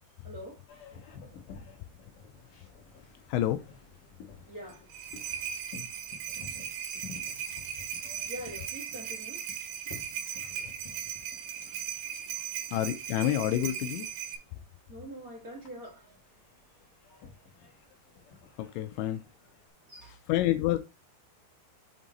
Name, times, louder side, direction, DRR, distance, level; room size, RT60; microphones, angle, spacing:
voice 1, 0.2-0.8 4.4-5.4 7.5-7.6 8.3-9.4 10.2-10.7 11.6-11.8 12.0-12.7 14.9-16.2 17.1-17.5 19.8-20.2, equal, 40° right, 1.2 m, -46 dB
Boat Water vehicle, 0.7-19.7, left 5 dB, 60° left, 2.4 m, -52 dB
voice 2, 3.3-3.6 12.7-14.1 18.6-19.2 20.3-20.8, left 13 dB, 85° left, 2.7 m, -28 dB
sound 1, 4.7-14.4, right 9 dB, 80° right, 3.5 m, -38 dB
7.5 x 3.6 x 3.9 m
omnidirectional pair, 5.4 m